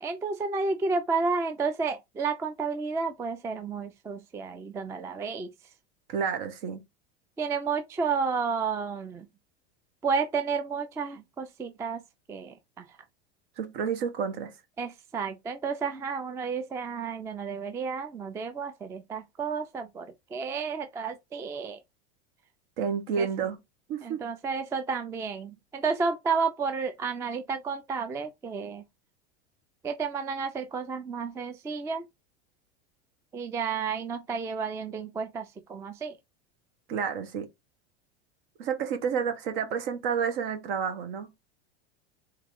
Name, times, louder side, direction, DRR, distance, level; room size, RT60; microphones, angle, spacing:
voice 1, 0.0-5.5 7.4-9.3 10.0-12.0 12.3-12.8 14.8-21.8 23.2-23.5 24.0-28.8 29.8-32.0 33.3-36.1, right 5 dB, 10° right, 0.3 m, -31 dB
voice 2, 6.1-6.8 13.6-14.5 22.8-23.6 23.9-24.2 36.9-37.5 38.6-41.3, right 6 dB, 65° right, 1.4 m, -30 dB
3.8 x 3.0 x 3.6 m
supercardioid pair, 130°, 32 cm